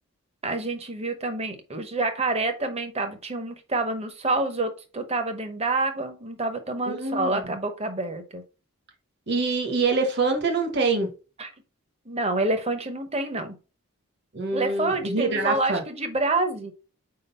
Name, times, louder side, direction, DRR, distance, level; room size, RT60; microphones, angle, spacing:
voice 1, 0.4-8.4 11.4-11.5 12.1-13.6 14.5-16.7, right 2 dB, 30° right, 0.9 m, -27 dB
voice 2, 6.9-7.5 9.3-11.1 14.3-15.8, right 3 dB, 50° right, 1.2 m, -25 dB
4.7 x 3.9 x 5.4 m
head